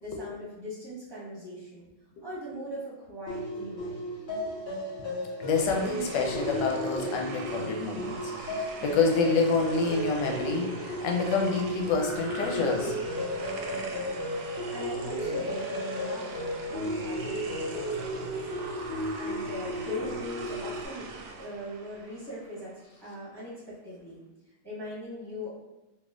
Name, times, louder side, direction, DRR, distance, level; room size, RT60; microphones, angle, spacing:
voice 1, 0.0-1.9 2.2-4.0 13.8-18.4 19.1-21.1 21.4-24.2 24.6-25.6, equal, 15° right, -8 dB, 1.0 m, -41 dB
sound 1, 3.3-20.9, equal, 60° left, 2.1 m, -34 dB
voice 2, 5.4-12.9, left 4 dB, 90° left, 1 dB, 1.3 m, -28 dB
sound 2, 5.5-22.9, right 3 dB, 75° right, 1.0 m, -42 dB
4.1 x 2.7 x 2.4 m, 1.0 s
omnidirectional pair, 1.9 m